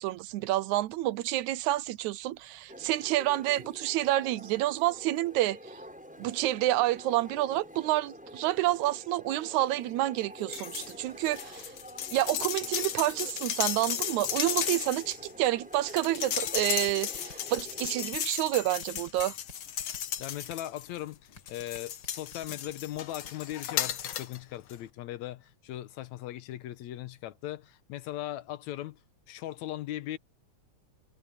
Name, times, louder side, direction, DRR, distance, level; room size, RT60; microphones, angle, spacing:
voice 1, 0.0-5.6 6.2-11.7 12.1-19.4, right 15 dB, 80° right, 2.0 m, -29 dB
sound 1, 2.7-18.1, equal, ahead, 6.3 m, -48 dB
sound 2, 10.5-10.9 11.2-21.0 21.5-24.4 24.7-24.8, left 10 dB, 60° left, 2.0 m, -35 dB
sound 3, 16.5-18.3 18.8-19.5 19.8-20.6 21.4-23.0 23.2-23.5 23.8-24.2, left 2 dB, 35° left, 5.5 m, -49 dB
voice 2, 20.2-29.0 29.3-30.2, left 14 dB, 80° left, 2.1 m, -39 dB
omnidirectional pair, 3.4 m